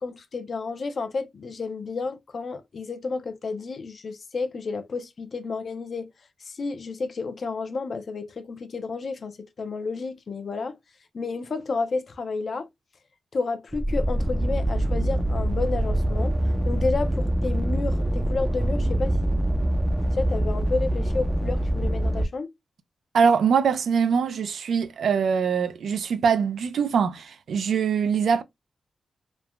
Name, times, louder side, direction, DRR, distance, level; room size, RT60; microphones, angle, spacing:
voice 1, 0.0-6.1 6.4-10.8 11.1-12.7 13.3-16.4 16.6-19.1 20.1-22.5, left 4 dB, 50° left, 0.5 m, -31 dB
sound 1, 13.7-22.2, right 1 dB, 15° right, 0.4 m, -24 dB
voice 2, 23.1-28.4, right 6 dB, 80° right, 0.4 m, -23 dB
3.1 x 2.1 x 2.3 m
wide cardioid pair, 150°, 0 cm